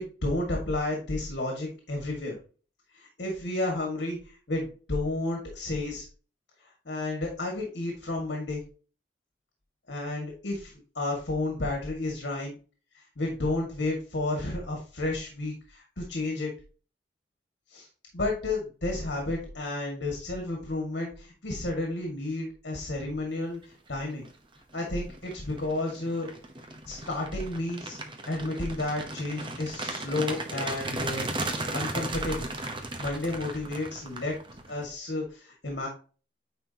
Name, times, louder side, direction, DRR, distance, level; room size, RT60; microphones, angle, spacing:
voice 1, 0.0-2.4 2.9-6.1 6.9-8.6 9.9-12.6 12.9-16.5 17.7-17.9 18.1-24.3 24.7-26.3 26.9-28.0 28.3-31.3 31.7-32.5 33.0-34.4 34.7-35.9, left 2 dB, 70° left, 1 dB, 2.0 m, -31 dB
sound 1, 24.0-24.3 24.7-34.8, right 2 dB, 30° right, 0.9 m, -36 dB
9.4 x 4.4 x 2.9 m, 0.37 s
head